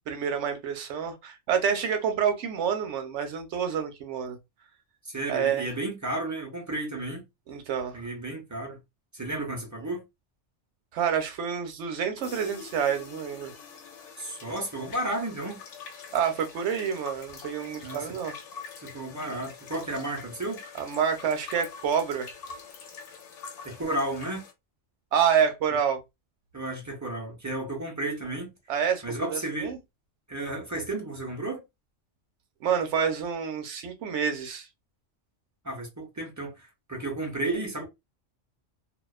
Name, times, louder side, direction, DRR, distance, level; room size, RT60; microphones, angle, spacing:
voice 1, 0.1-4.4 5.3-5.7 7.5-8.0 10.9-13.5 16.1-18.3 20.8-22.3 25.1-26.0 28.7-29.0 29.3-29.8 32.6-34.7, right 7 dB, 70° right, 0.9 m, -28 dB
voice 2, 5.0-7.3 7.9-8.8 9.1-10.0 14.2-15.6 17.8-18.2 18.8-20.6 23.6-24.5 26.5-28.5 29.0-29.7 30.3-31.6 35.6-37.9, right 2 dB, 20° right, 0.4 m, -33 dB
sound 1, 12.2-24.5, left 6 dB, 75° left, 0.9 m, -45 dB
2.4 x 2.2 x 2.3 m
omnidirectional pair, 1.3 m